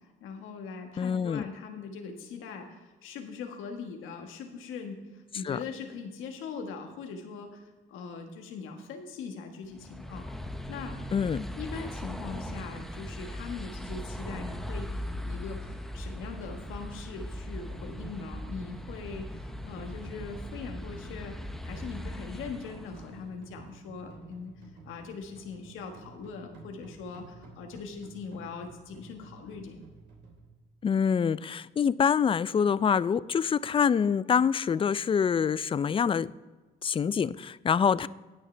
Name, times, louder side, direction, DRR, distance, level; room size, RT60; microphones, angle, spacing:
voice 1, 0.2-10.3 10.7-11.0 11.6-24.5 24.8-29.8, left 5 dB, 90° left, 4 dB, 1.4 m, -41 dB
voice 2, 1.0-1.4 5.4-5.6 11.1-11.4 30.8-36.3 36.8-38.1, left 7 dB, 25° left, 18 dB, 0.3 m, -26 dB
sound 1, 9.7-23.2, equal, ahead, 0.8 m, -39 dB
sound 2, 17.7-30.5, right 3 dB, 60° right, 3.1 m, -51 dB
18.5 x 6.6 x 3.3 m, 1.3 s
cardioid pair, 90°, 20 cm